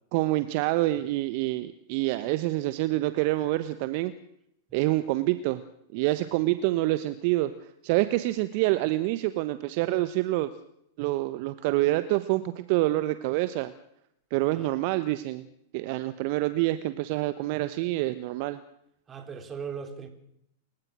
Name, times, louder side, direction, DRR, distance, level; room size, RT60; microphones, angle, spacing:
voice 1, 0.1-4.1 4.7-5.6 5.9-7.5 7.8-10.5 11.0-13.7 14.3-15.5 15.7-18.6, right 17 dB, 50° right, 1.1 m, -27 dB
voice 2, 14.5-14.8 19.1-20.1, right 6 dB, 25° right, 3.9 m, -39 dB
28.5 x 16.0 x 6.3 m
hypercardioid pair, 100°, 0 cm